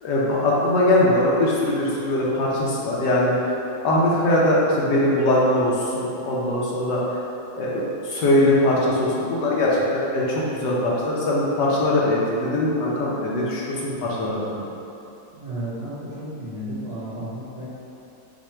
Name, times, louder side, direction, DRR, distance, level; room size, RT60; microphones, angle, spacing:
voice 1, 0.0-3.5 3.8-7.2 7.5-14.7, left 1 dB, 85° left, -5 dB, 1.4 m, -21 dB
voice 2, 15.3-17.7, right 1 dB, 40° right, -10 dB, 1.2 m, -33 dB
4.9 x 2.2 x 4.3 m, 2.9 s
omnidirectional pair, 1.8 m